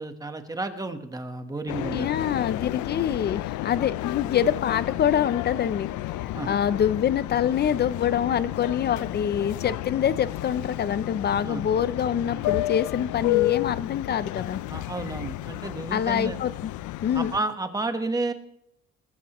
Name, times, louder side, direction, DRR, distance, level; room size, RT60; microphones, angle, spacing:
voice 1, 0.0-2.3 6.3-6.5 11.4-11.7 14.7-16.4 17.1-18.3, right 2 dB, 10° right, 7 dB, 1.2 m, -31 dB
sound 1, 1.7-17.4, left 16 dB, 80° left, 0.6 m, -31 dB
voice 2, 1.9-5.9 6.5-14.6 15.9-16.7 17.0-17.3, left 9 dB, 35° left, 16 dB, 0.5 m, -25 dB
20.0 x 13.5 x 3.0 m, 0.77 s
cardioid pair, 150°, 30 cm